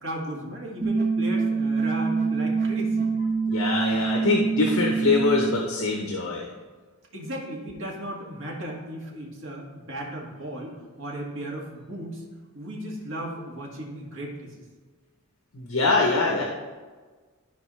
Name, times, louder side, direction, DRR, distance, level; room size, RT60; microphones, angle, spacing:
voice 1, 0.0-3.1 7.1-12.2 12.5-14.5, right 1 dB, 60° right, -3 dB, 2.0 m, -35 dB
sound 1, 0.8-5.8, right 4 dB, 30° right, 1.0 m, -25 dB
voice 2, 3.5-6.5 15.5-16.4, left 3 dB, 65° left, -1 dB, 0.9 m, -23 dB
13.0 x 4.6 x 3.2 m, 1.4 s
head